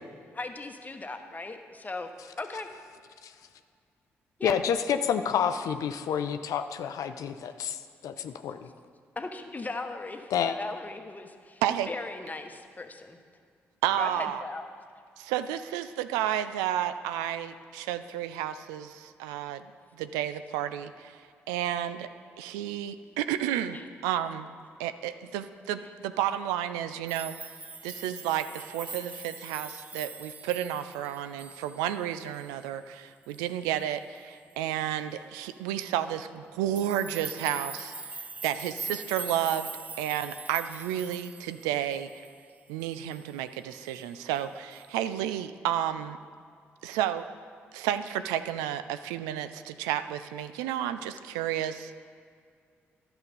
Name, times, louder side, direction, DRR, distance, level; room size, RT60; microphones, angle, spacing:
voice 1, 0.3-2.1 2.4-2.7 4.4-4.5 9.2-13.2 14.0-14.6 23.7-23.9, left 3 dB, 25° left, 6 dB, 1.1 m, -38 dB
voice 2, 4.4-8.7 10.3-10.6, left 8 dB, 70° left, 9 dB, 0.5 m, -29 dB
voice 3, 13.8-14.4 15.2-19.7 19.9-21.2 21.5-22.1 22.4-24.5 24.8-27.3 27.8-39.7 40.0-42.1 42.7-46.2 46.8-47.2 47.7-51.9, right 11 dB, 85° right, 11 dB, 0.4 m, -31 dB
sound 1, 27.1-32.1 32.3-32.7 33.3-33.6 36.8-42.4 42.8-43.3 43.7-44.1 44.7-44.9, right 3 dB, 25° right, 0.6 m, -42 dB
11.0 x 6.9 x 5.3 m, 2.2 s
hypercardioid pair, 45°, 6 cm